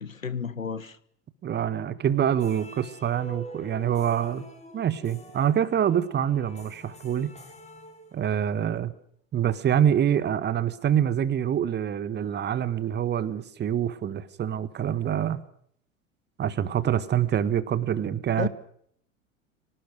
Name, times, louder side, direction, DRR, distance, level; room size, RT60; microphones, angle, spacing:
voice 1, 0.0-1.0 18.4-18.5, left 5 dB, 85° left, 17 dB, 1.2 m, -31 dB
voice 2, 1.4-4.4 4.7-7.3 8.1-8.9 9.3-15.4 16.4-18.5, right 9 dB, 25° right, 16 dB, 1.6 m, -25 dB
sound 1, 2.3-8.6, equal, 15° left, 6.6 m, -46 dB
24.5 x 18.5 x 6.5 m, 0.64 s
figure-of-eight pair, 80°, 39 cm